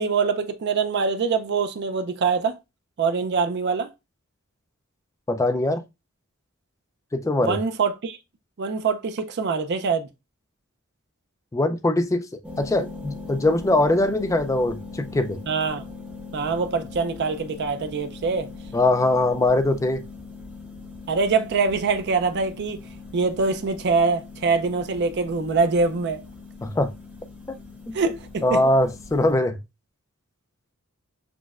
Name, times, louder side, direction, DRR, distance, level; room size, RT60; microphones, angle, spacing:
voice 1, 0.0-2.6 3.0-3.9 7.4-8.2 8.6-10.1 15.5-15.8 16.3-18.5 21.1-22.8 23.1-26.2 27.9-28.6, right 4 dB, 50° right, 0.4 m, -24 dB
voice 2, 5.3-5.8 7.1-7.6 11.5-12.2 12.6-15.4 18.7-20.0 26.6-26.9 27.5-27.6 27.9-28.0 28.4-29.6, left 2 dB, 15° left, 0.3 m, -22 dB
sound 1, 12.4-29.3, left 3 dB, 5° right, 0.8 m, -41 dB
6.0 x 2.1 x 2.3 m
head